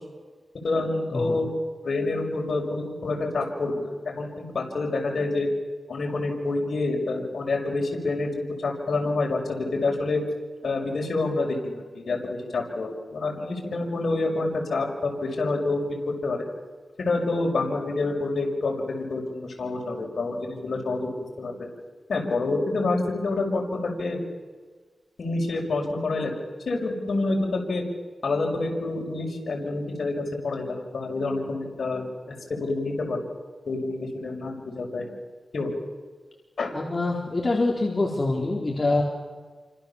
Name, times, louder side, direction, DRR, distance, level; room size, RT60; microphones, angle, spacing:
voice 1, 0.6-1.5 1.8-5.5 5.9-8.3 8.6-10.2 10.6-16.4 17.0-18.7 19.1-21.1 21.4-21.5 22.1-24.2 25.2-26.3 26.7-27.8 28.2-30.1 30.4-32.3 32.6-33.2 33.7-35.1 35.5-35.8 36.6-36.7, left 3 dB, 75° left, 0 dB, 6.0 m, -27 dB
voice 2, 36.7-39.0, left 2 dB, 40° left, -1 dB, 4.1 m, -25 dB
28.5 x 25.5 x 7.3 m, 1.4 s
wide cardioid pair, 80°, 0 cm